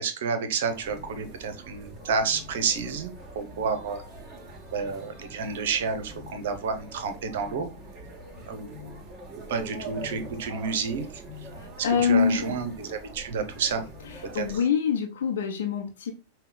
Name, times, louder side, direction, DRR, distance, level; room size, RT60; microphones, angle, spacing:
voice 1, 0.0-4.0 4.7-7.7 8.5-8.9 9.5-11.2 11.9-13.9 14.3-14.6, right 5 dB, 55° right, 9 dB, 0.8 m, -30 dB
sound 1, 0.7-14.6, right 1 dB, 25° right, 1.5 m, -43 dB
voice 2, 11.6-12.6 14.3-16.1, left 7 dB, 60° left, 3 dB, 0.7 m, -25 dB
5.5 x 2.3 x 3.7 m, 0.29 s
figure-of-eight pair, 90°, 0 cm